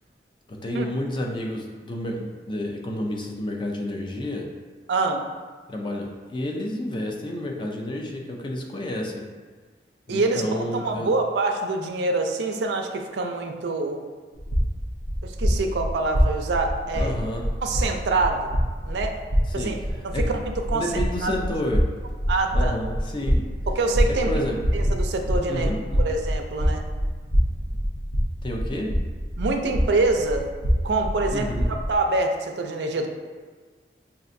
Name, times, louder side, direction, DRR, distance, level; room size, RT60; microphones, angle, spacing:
voice 1, 0.5-4.5 5.7-9.2 10.1-11.1 16.9-17.5 19.5-19.7 20.1-20.4 20.7-21.9 22.5-23.4 24.3-24.6 25.5-26.0 28.4-28.9 31.3-31.7, left 1 dB, 25° left, 0 dB, 0.4 m, -30 dB
voice 2, 4.9-5.2 10.1-14.0 15.2-17.1 17.6-18.5 18.8-19.2 19.5-19.8 20.0-20.9 21.2-21.3 22.3-22.7 23.7-24.4 24.7-25.7 26.0-26.8 29.4-33.1, right 3 dB, 70° right, 3 dB, 0.4 m, -25 dB
sound 1, 14.3-31.9, equal, 80° left, 0.7 m, -26 dB
5.3 x 2.5 x 2.5 m, 1.5 s
head